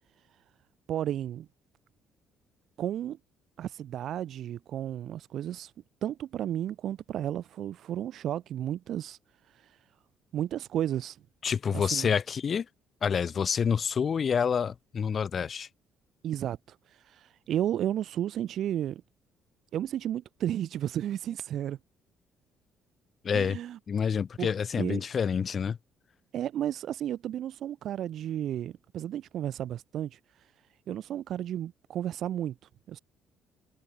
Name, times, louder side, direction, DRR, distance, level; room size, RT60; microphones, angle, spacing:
voice 1, 0.9-1.5 2.8-3.2 3.6-5.7 6.0-9.2 9.4-9.9 10.3-11.2 11.7-12.1 16.2-19.0 19.7-21.8 23.3-23.8 24.4-25.0 26.3-30.5 30.9-33.0, right 11 dB, 65° right, 3.0 m, -33 dB
voice 2, 11.4-12.7 13.0-15.7 23.2-23.6 23.9-25.8, left 7 dB, 40° left, 2.6 m, -28 dB
cardioid pair, 110°, 0 cm